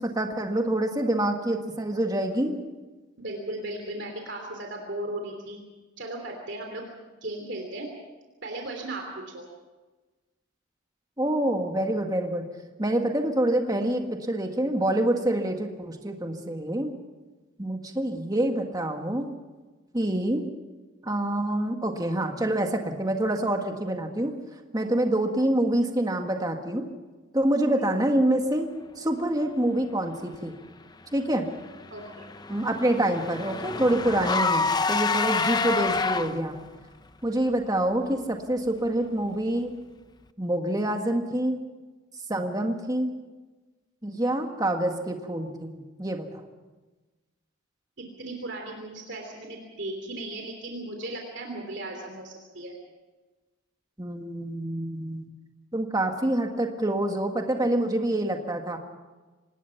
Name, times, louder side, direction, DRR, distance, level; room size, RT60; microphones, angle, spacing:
voice 1, 0.0-2.6 11.2-12.5 12.8-16.9 17.6-19.3 19.9-20.4 21.0-24.3 24.7-26.8 27.3-28.7 29.0-30.6 31.1-31.5 32.5-36.6 37.2-39.7 40.4-41.6 42.3-43.1 44.0-46.4 54.0-55.3 55.7-58.8, right 1 dB, 20° right, 4 dB, 1.8 m, -26 dB
voice 2, 3.2-5.6 6.0-6.8 7.2-7.9 8.4-9.0 9.3-9.4 31.9-32.3 48.0-52.7, right 1 dB, 60° right, 2 dB, 3.1 m, -36 dB
Car / Engine, 31.6-36.6, left 4 dB, 20° left, 0.6 m, -27 dB
25.0 x 19.5 x 5.9 m, 1.2 s
head